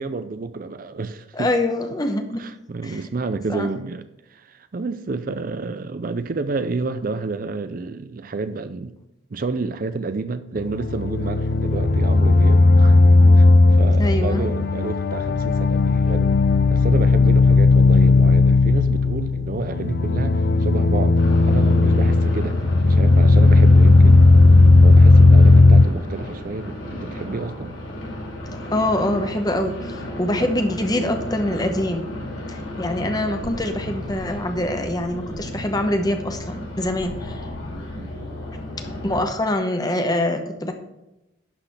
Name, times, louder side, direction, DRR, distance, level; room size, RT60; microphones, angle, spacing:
voice 1, 0.0-1.5 2.4-8.9 9.3-13.0 13.3-16.4 16.7-22.6 22.8-24.2 24.8-27.7 38.0-38.1, right 3 dB, 45° right, 0.4 m, -30 dB
voice 2, 1.3-2.5 2.8-3.0 3.5-3.7 14.0-14.5 28.7-32.2 32.5-37.5 39.0-40.7, left 1 dB, 20° left, 1.0 m, -24 dB
sound 1, 10.6-25.8, left 3 dB, 50° left, 0.4 m, -15 dB
sound 2, 21.1-39.2, left 1 dB, 70° left, 3.4 m, -33 dB
11.5 x 4.1 x 6.8 m
head